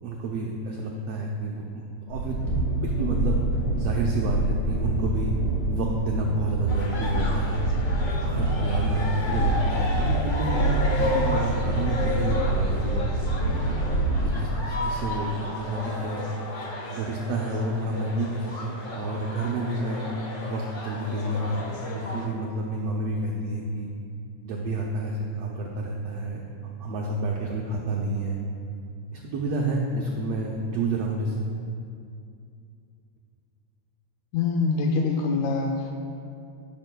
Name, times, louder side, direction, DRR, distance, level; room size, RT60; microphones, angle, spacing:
voice 1, 0.0-3.4 3.7-5.3 5.7-7.6 7.9-10.5 11.0-13.1 13.6-13.8 14.2-16.3 16.6-16.7 16.9-20.0 20.4-23.9 24.4-28.4 29.1-31.5, right 2 dB, 75° right, -1 dB, 1.6 m, -30 dB
Train, 2.1-14.3, right 2 dB, 35° left, 2.8 m, -26 dB
sound 1, 6.7-22.2, left 2 dB, 65° left, 0.7 m, -33 dB
voice 2, 34.3-35.9, left 4 dB, 85° left, 1 dB, 2.0 m, -24 dB
18.0 x 6.8 x 2.2 m, 2.4 s
omnidirectional pair, 3.3 m